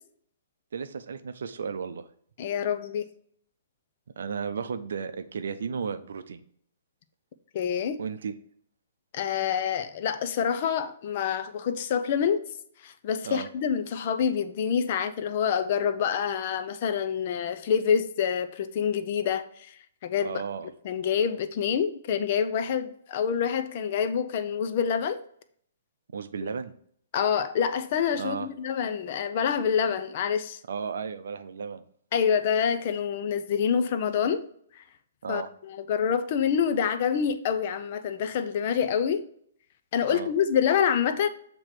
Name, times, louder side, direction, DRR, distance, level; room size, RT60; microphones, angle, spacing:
voice 1, 0.7-2.1 4.2-6.4 8.0-8.3 13.2-13.5 20.2-20.7 26.1-26.8 28.2-28.5 30.7-31.8 35.2-35.5 40.0-40.3, right 6 dB, 65° right, 0.5 m, -34 dB
voice 2, 2.4-3.1 7.5-8.0 9.1-12.4 12.8-19.8 20.0-20.4 20.8-25.2 27.1-30.6 32.1-34.4 34.8-34.9 35.3-39.2 39.9-41.3, left 7 dB, 45° left, 0.6 m, -27 dB
7.2 x 3.0 x 4.7 m
figure-of-eight pair, 120°, 0 cm